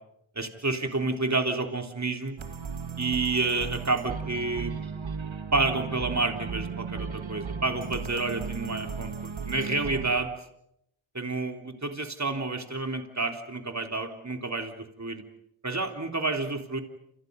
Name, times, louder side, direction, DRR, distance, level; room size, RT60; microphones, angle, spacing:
voice 1, 0.4-2.4 3.0-4.8 5.5-10.3 11.1-15.3 15.6-16.8, right 3 dB, 35° right, 4 dB, 3.5 m, -29 dB
sound 1, 2.4-10.2, right 6 dB, 75° right, 2.3 m, -35 dB
29.0 x 28.0 x 5.4 m, 0.76 s
cardioid pair, 50°, 47 cm